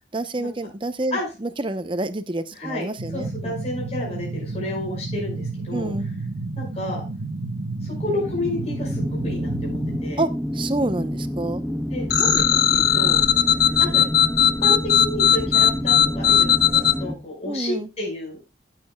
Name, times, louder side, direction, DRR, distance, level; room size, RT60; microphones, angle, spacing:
voice 1, 0.1-3.6 5.7-6.1 10.2-11.6 17.5-17.9, right 2 dB, 30° right, 11 dB, 0.8 m, -28 dB
voice 2, 2.5-5.9 6.6-7.0 7.8-10.2 11.9-13.2 13.7-14.0 14.4-18.4, left 1 dB, 35° left, -2 dB, 5.4 m, -31 dB
sound 1, 3.0-10.0, right 3 dB, 75° right, 1.0 m, -31 dB
sound 2, 7.8-17.1, equal, 5° right, 1.0 m, -29 dB
sound 3, 12.1-16.9, left 9 dB, 55° left, 1.4 m, -18 dB
15.5 x 7.7 x 2.3 m, 0.28 s
head